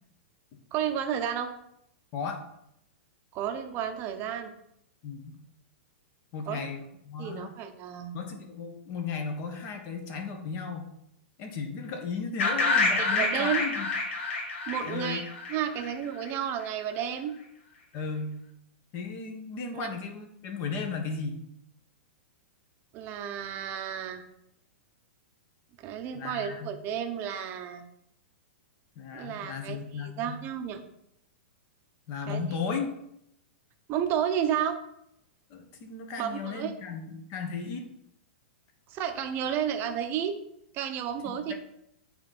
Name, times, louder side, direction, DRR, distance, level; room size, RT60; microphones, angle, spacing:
voice 1, 0.7-1.5 3.3-4.5 6.5-6.7 7.2-8.2 13.0-13.6 14.7-15.2 15.5-17.4 19.7-19.9 22.9-24.2 25.8-27.8 29.1-30.8 32.3-32.4 33.9-34.8 36.2-36.7 38.9-40.3 40.7-41.5, right 9 dB, 30° right, 7 dB, 0.8 m, -32 dB
voice 2, 6.3-7.5 8.1-10.9 11.4-13.8 14.8-15.2 17.9-18.4 18.9-21.4 26.1-26.8 29.0-30.4 32.1-32.9 35.5-37.8 41.2-41.5, left 5 dB, 40° left, 4 dB, 1.4 m, -35 dB
sound 1, 12.4-16.3, left 3 dB, 70° left, 1.8 m, -28 dB
8.8 x 4.0 x 4.3 m, 0.76 s
hypercardioid pair, 145°, 7 cm